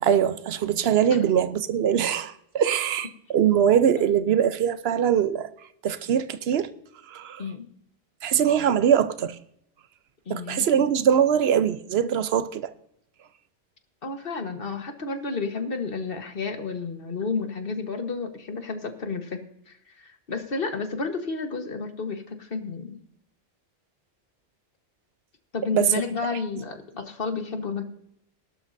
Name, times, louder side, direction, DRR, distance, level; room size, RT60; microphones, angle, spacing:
voice 1, 0.0-5.5 5.8-6.7 7.1-7.4 8.2-9.4 10.3-12.7 25.7-25.9 26.3-26.4, right 8 dB, 75° right, 0.9 m, -22 dB
voice 2, 10.3-10.9 14.0-19.4 19.7-23.0 25.5-27.8, left 4 dB, 60° left, 1.5 m, -31 dB
18.0 x 12.5 x 2.7 m
omnidirectional pair, 1.1 m